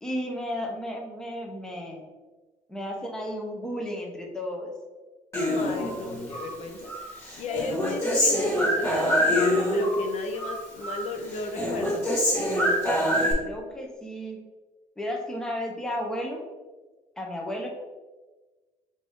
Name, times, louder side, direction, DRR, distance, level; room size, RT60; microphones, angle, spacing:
voice 1, 0.0-2.0 2.7-4.7 12.9-14.4 15.0-16.4 17.2-17.7, equal, 5° left, 0 dB, 0.6 m, -33 dB
Human voice, 5.3-6.5 6.9-10.1 10.3-11.1 11.3-13.3, equal, 20° left, 1.5 m, -25 dB
voice 2, 5.4-12.1, left 3 dB, 55° left, 4 dB, 0.5 m, -34 dB
5.1 x 2.6 x 3.4 m, 1.2 s
cardioid pair, 140°, 14 cm